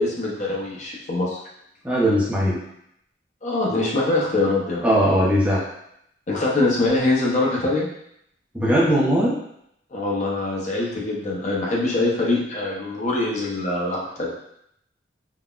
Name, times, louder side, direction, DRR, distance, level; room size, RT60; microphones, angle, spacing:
voice 1, 0.0-1.4 3.4-4.9 6.3-7.9 9.9-14.3, left 2 dB, 40° left, -3 dB, 0.5 m, -23 dB
voice 2, 1.8-2.6 4.8-5.7 8.5-9.4, equal, 10° right, -7 dB, 0.5 m, -19 dB
3.6 x 2.0 x 2.3 m, 0.75 s
head